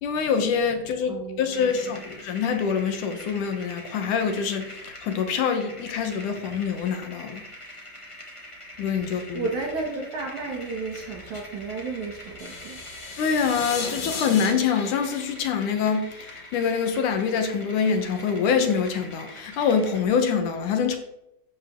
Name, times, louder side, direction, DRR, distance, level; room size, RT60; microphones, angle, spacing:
voice 1, 0.0-7.4 8.8-9.5 13.2-21.0, left 6 dB, 65° left, 2.4 m, -25 dB
voice 2, 1.1-1.9 9.1-12.8, right 3 dB, 60° right, 2.5 m, -33 dB
sound 1, 1.5-20.0, left 1 dB, 15° left, 1.1 m, -44 dB
sound 2, 12.4-16.5, left 4 dB, 45° left, 1.7 m, -36 dB
12.0 x 8.8 x 3.7 m
omnidirectional pair, 4.3 m